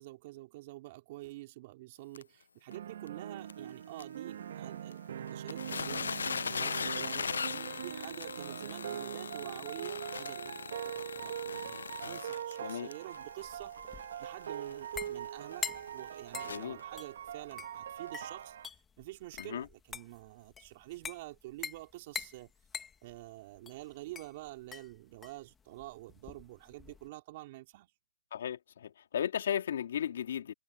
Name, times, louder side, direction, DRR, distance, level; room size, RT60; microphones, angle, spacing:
voice 1, 0.0-6.0 6.5-15.7 15.9-22.5 23.0-27.9, right 18 dB, 30° right, 4.5 m, -48 dB
sound 1, 2.1-2.2 2.7-2.8 3.1-3.2 3.5-3.6 4.0-4.1 4.9-5.0 5.3-16.8 17.5-17.6 18.1-18.2, left 5 dB, 70° left, 0.5 m, -39 dB
sound 2, 2.7-18.7, right 10 dB, 45° right, 1.6 m, -42 dB
sound 3, 13.1-27.1, left 6 dB, 10° left, 1.7 m, -46 dB
voice 2, 28.3-30.5, left 9 dB, 50° left, 2.1 m, -35 dB
hypercardioid pair, 155°, 0 cm